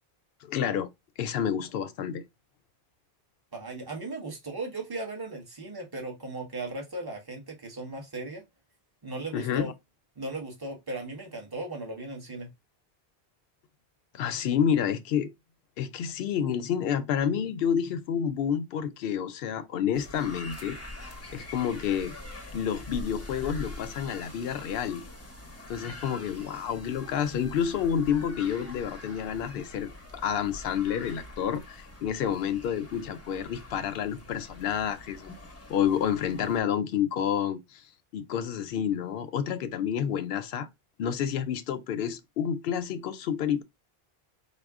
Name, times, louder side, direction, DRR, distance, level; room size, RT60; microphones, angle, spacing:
voice 1, 0.4-0.9 1.2-2.2 9.3-9.7 14.1-15.3 15.8-20.8 21.3-22.1 22.5-25.0 25.7-35.3 35.7-37.8 38.1-40.7 41.0-43.6, left 8 dB, 70° left, 0.8 m, -29 dB
voice 2, 3.5-8.4 9.0-9.7 10.2-12.5, right 2 dB, 25° right, 1.1 m, -37 dB
sound 1, 19.9-36.6, left 1 dB, 15° left, 0.6 m, -44 dB
4.2 x 2.2 x 3.5 m
omnidirectional pair, 1.0 m